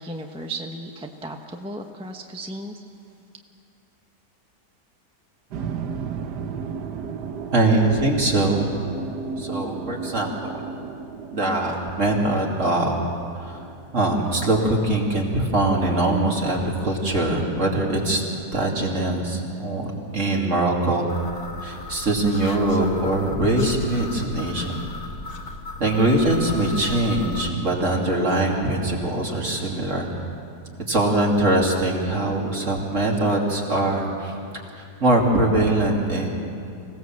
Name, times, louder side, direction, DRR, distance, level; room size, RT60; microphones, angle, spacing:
voice 1, 0.0-2.9, right 1 dB, 5° right, 3 dB, 0.8 m, -35 dB
sound 1, 5.5-14.4, right 6 dB, 85° right, 1.6 m, -34 dB
voice 2, 7.5-8.7 9.4-10.6 11.3-13.0 13.4-13.7 13.9-18.2 18.5-19.9 20.1-21.1 21.6-24.8 25.8-30.1 30.9-34.3 34.8-36.3, right 2 dB, 45° right, -1 dB, 3.2 m, -22 dB
sound 2, 21.1-27.5, left 3 dB, 45° left, 1.5 m, -36 dB
26.0 x 17.5 x 7.6 m, 2.5 s
omnidirectional pair, 1.8 m